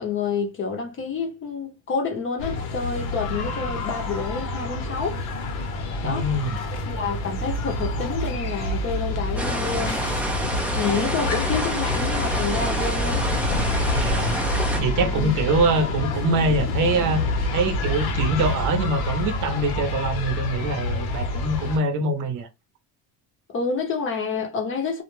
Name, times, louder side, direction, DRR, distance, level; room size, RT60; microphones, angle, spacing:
voice 1, 0.0-5.2 6.0-6.3 6.9-10.0 10.7-13.3 15.0-15.4 23.5-25.0, left 5 dB, 35° left, 0.6 m, -28 dB
sound 1, 2.4-21.8, left 2 dB, 80° left, 0.8 m, -27 dB
voice 2, 6.0-6.6 13.9-14.4 14.8-17.2 17.5-22.5, right 2 dB, 55° right, 0.7 m, -24 dB
sound 2, 9.4-14.8, right 1 dB, 5° right, 0.3 m, -28 dB
2.2 x 2.1 x 3.0 m
cardioid pair, 145°, 37 cm